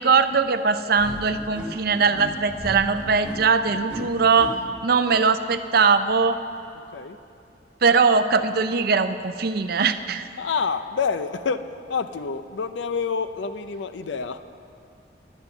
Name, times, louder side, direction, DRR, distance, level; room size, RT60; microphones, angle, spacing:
voice 1, 0.0-6.4 7.8-10.3, right 5 dB, 55° right, 10 dB, 0.5 m, -21 dB
sound 1, 1.0-4.5, equal, 5° right, 2.6 m, -36 dB
voice 2, 10.4-11.6 11.9-14.4, left 5 dB, 85° left, 11 dB, 0.5 m, -27 dB
10.5 x 9.8 x 7.0 m, 2.5 s
head